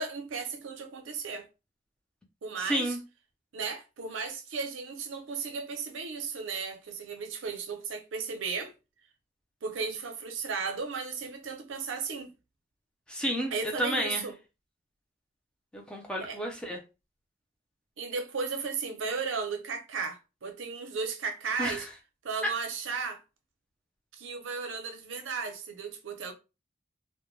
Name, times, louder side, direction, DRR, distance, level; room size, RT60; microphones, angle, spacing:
voice 1, 0.0-1.5 2.4-3.0 3.5-8.7 9.6-12.3 13.5-14.4 16.2-16.4 18.0-21.9 22.2-23.2 24.1-26.3, right 5 dB, 80° right, 0.5 m, -35 dB
voice 2, 2.6-3.0 13.1-13.5 13.8-14.2 15.7-16.8 21.6-21.8, equal, 5° left, 0.5 m, -31 dB
2.2 x 2.1 x 3.0 m
head